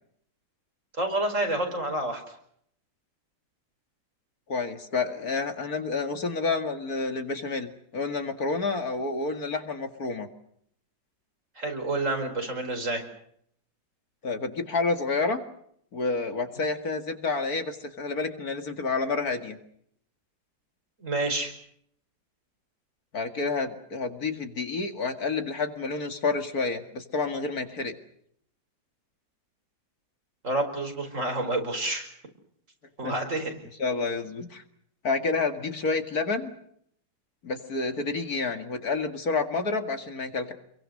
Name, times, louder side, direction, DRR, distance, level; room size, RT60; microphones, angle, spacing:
voice 1, 1.0-2.2 11.6-13.0 21.0-21.5 30.4-32.1 33.0-33.5, right 2 dB, 45° right, 4 dB, 5.2 m, -28 dB
voice 2, 4.5-10.3 14.2-15.4 15.9-19.6 23.1-28.0 33.0-33.1 33.8-34.6 35.0-36.5 37.4-40.5, left 4 dB, 60° left, 7 dB, 2.5 m, -29 dB
28.0 x 23.0 x 6.4 m, 0.68 s
omnidirectional pair, 1.8 m